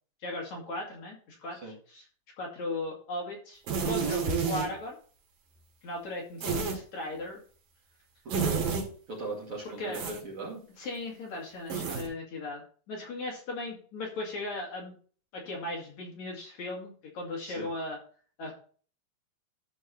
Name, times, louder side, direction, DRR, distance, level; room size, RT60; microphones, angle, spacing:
voice 1, 0.2-1.6 1.9-2.1 2.4-5.0 5.8-7.4 9.8-10.0 10.8-14.9 15.3-18.0 18.4-18.5, left 2 dB, 50° left, -2 dB, 3.1 m, -37 dB
sound 1, 3.7-4.7 6.4-6.8 8.3-8.8 9.9-10.2 11.7-12.1, right 5 dB, 65° right, 3.7 m, -29 dB
voice 2, 9.1-10.6 17.4-17.7, right 3 dB, 40° right, -3 dB, 2.8 m, -38 dB
13.0 x 4.7 x 4.2 m, 0.43 s
omnidirectional pair, 4.4 m